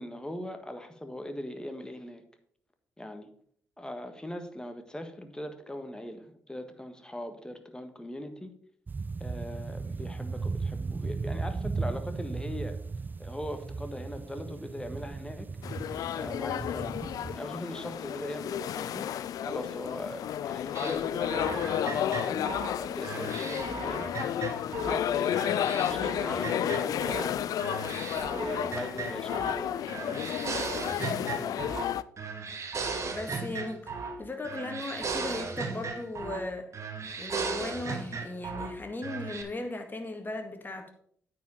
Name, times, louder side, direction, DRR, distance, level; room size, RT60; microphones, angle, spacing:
voice 1, 0.0-2.2 3.0-3.3 3.8-8.5 9.2-12.8 13.2-15.5 16.1-17.0 17.3-19.1 19.4-24.1 24.8-25.4 25.9-27.5 28.3-30.4 31.3-31.7, left 1 dB, 10° left, 7 dB, 1.6 m, -40 dB
sound 1, 8.9-17.4, right 4 dB, 30° right, 0.3 m, -36 dB
sound 2, 15.6-32.0, left 10 dB, 65° left, 0.3 m, -32 dB
sound 3, 20.8-25.0 25.3-27.3 27.6-29.6 29.9-31.9 32.2-34.2 34.4-36.5 36.7-38.7 39.0-39.4, right 4 dB, 50° right, 1.5 m, -36 dB
voice 2, 31.2-31.6 33.1-36.7 37.2-40.9, left 2 dB, 30° left, 5 dB, 2.0 m, -37 dB
9.1 x 5.0 x 5.5 m, 0.63 s
hypercardioid pair, 45°, 7 cm